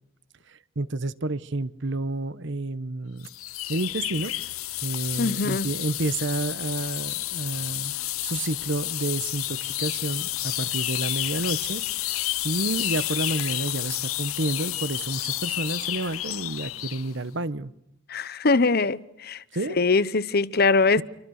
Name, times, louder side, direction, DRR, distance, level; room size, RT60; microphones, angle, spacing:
voice 1, 0.5-3.3 3.7-4.3 4.8-8.0 8.2-12.1 12.4-17.7 19.5-19.8, right 2 dB, 60° right, 1.1 m, -30 dB
sound 1, 3.2-17.1, left 15 dB, 85° left, 0.9 m, -30 dB
voice 2, 5.2-5.7 18.1-19.4 19.8-21.0, left 3 dB, 50° left, 0.9 m, -22 dB
29.0 x 24.5 x 6.5 m
head